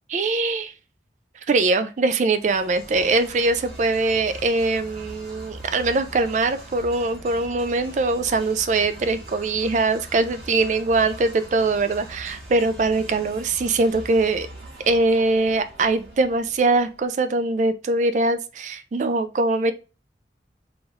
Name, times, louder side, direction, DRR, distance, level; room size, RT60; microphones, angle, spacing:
voice 1, 0.1-0.7 1.5-14.5 14.9-19.7, right 3 dB, 40° right, 10 dB, 0.3 m, -22 dB
sound 1, 2.3-17.0, right 1 dB, 70° right, 1.9 m, -42 dB
3.8 x 3.0 x 2.4 m, 0.31 s
head